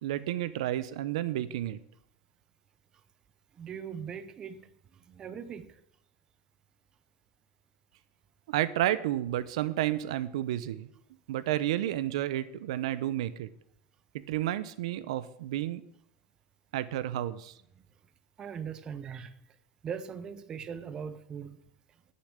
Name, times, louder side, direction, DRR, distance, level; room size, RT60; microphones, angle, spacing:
voice 1, 0.0-1.8 8.5-10.9 11.3-13.5 14.3-15.8 16.7-17.5, right 13 dB, 85° right, 0.8 m, -31 dB
voice 2, 3.5-5.8 18.4-19.4 19.8-21.6, right 7 dB, 25° right, 0.7 m, -40 dB
9.7 x 6.9 x 8.2 m
supercardioid pair, 155°, 3 cm